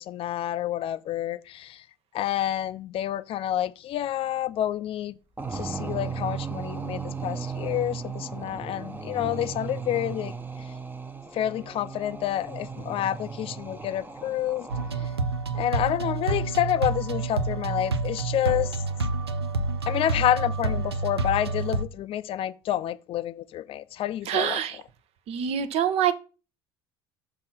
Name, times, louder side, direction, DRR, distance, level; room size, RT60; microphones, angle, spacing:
voice 1, 0.0-1.8 2.1-5.2 5.5-10.7 11.3-14.7 15.5-18.8 19.8-24.6, left 12 dB, 45° left, 0.5 m, -28 dB
sound 1, 5.4-15.3, right 5 dB, 15° right, 0.8 m, -36 dB
sound 2, 14.7-21.8, right 3 dB, 90° right, 0.5 m, -28 dB
voice 2, 24.3-24.8 25.3-26.1, right 9 dB, 50° right, 0.9 m, -25 dB
6.1 x 3.8 x 5.8 m
figure-of-eight pair, 65°, 13 cm